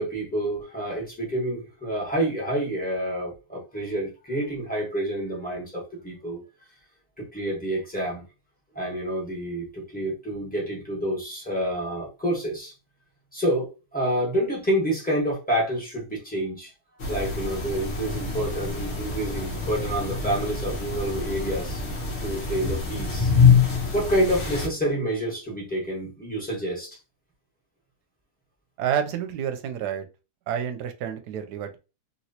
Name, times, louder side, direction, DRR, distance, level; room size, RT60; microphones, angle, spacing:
voice 1, 0.0-6.4 7.2-8.2 8.7-12.7 13.3-16.7 17.1-21.8 22.2-23.3 23.9-27.0, right 1 dB, 5° left, -5 dB, 1.1 m, -28 dB
sound 1, 17.0-24.7, left 5 dB, 50° left, 1.1 m, -25 dB
voice 2, 28.8-30.1 30.5-31.8, right 9 dB, 80° right, 8 dB, 1.2 m, -29 dB
3.0 x 3.0 x 2.7 m, 0.30 s
omnidirectional pair, 1.7 m